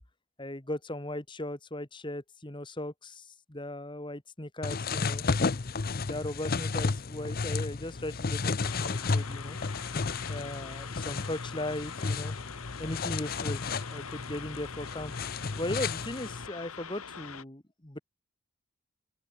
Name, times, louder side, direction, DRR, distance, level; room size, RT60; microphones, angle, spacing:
voice 1, 0.4-5.2 6.0-9.6 10.3-12.4 12.8-13.6 13.9-15.1 15.6-18.0, left 1 dB, 20° left, 1.5 m, -38 dB
sound 1, 4.6-16.5, left 4 dB, 40° left, 0.6 m, -33 dB
sound 2, 8.6-17.4, left 6 dB, 85° left, 2.4 m, -44 dB
open air
head